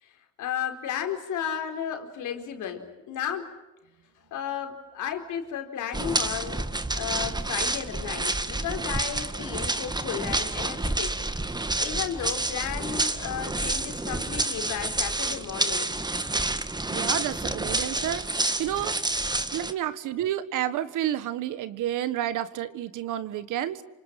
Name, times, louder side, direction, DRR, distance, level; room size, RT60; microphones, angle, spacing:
voice 1, 0.0-3.5 4.3-11.1 11.8-16.0 19.8-19.9, left 9 dB, 80° left, 5 dB, 4.3 m, -34 dB
sound 1, 5.9-19.7, right 2 dB, 15° right, 1.8 m, -29 dB
voice 2, 16.9-19.3 19.5-23.8, right 12 dB, 90° right, 13 dB, 1.7 m, -30 dB
27.5 x 26.0 x 7.6 m, 1.0 s
cardioid pair, 90°, 30 cm